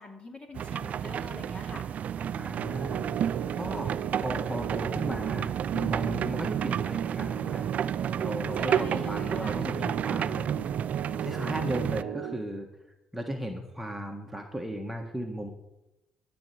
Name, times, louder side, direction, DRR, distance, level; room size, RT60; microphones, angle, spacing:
voice 1, 0.0-1.8 8.5-9.6, left 3 dB, 35° left, 2 dB, 2.5 m, -43 dB
sound 1, 0.5-12.0, right 9 dB, 55° right, 0.3 m, -31 dB
voice 2, 2.4-3.1 3.5-7.6 7.9-10.7 11.2-12.7 13.1-15.5, right 1 dB, 5° right, 1 dB, 1.4 m, -36 dB
sound 2, 2.5-12.4, right 9 dB, 75° right, 0.8 m, -38 dB
13.0 x 4.4 x 8.4 m, 0.91 s
supercardioid pair, 80°, 3 cm